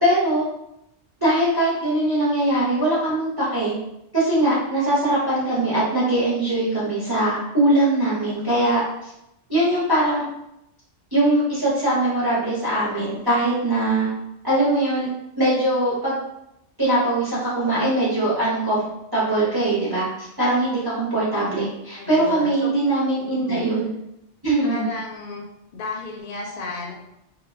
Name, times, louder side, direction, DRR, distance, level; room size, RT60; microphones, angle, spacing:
voice 1, 0.0-0.5 1.2-3.8 4.1-9.1 9.5-10.2 11.1-14.1 14.4-15.1 15.4-16.2 16.8-18.8 19.1-23.9 24.4-24.9, right 1 dB, 25° right, -7 dB, 0.6 m, -21 dB
voice 2, 22.0-22.7 23.2-23.8 24.6-25.4 25.7-26.9, left 3 dB, 60° left, 0 dB, 0.6 m, -33 dB
2.2 x 2.1 x 3.2 m, 0.83 s
omnidirectional pair, 1.2 m